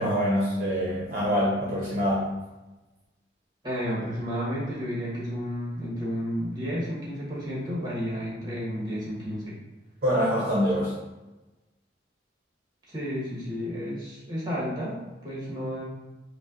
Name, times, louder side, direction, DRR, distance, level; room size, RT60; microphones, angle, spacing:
voice 1, 0.0-2.2 10.0-10.9, equal, 50° right, -6 dB, 0.8 m, -25 dB
voice 2, 3.6-9.6 10.8-10.9 12.9-15.8, equal, 25° right, -6 dB, 1.2 m, -32 dB
5.1 x 2.2 x 2.5 m, 1.1 s
head